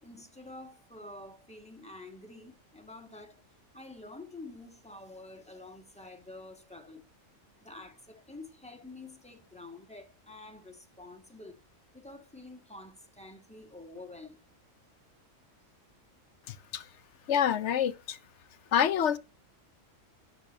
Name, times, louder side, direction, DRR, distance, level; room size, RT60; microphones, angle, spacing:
voice 1, 0.0-3.4 3.7-7.0 7.6-11.6 11.9-14.4, left 2 dB, 5° left, 1.4 m, -48 dB
voice 2, 16.5-16.9 17.3-18.2 18.7-19.2, left 9 dB, 70° left, 0.9 m, -27 dB
12.0 x 4.0 x 7.8 m
omnidirectional pair, 1.3 m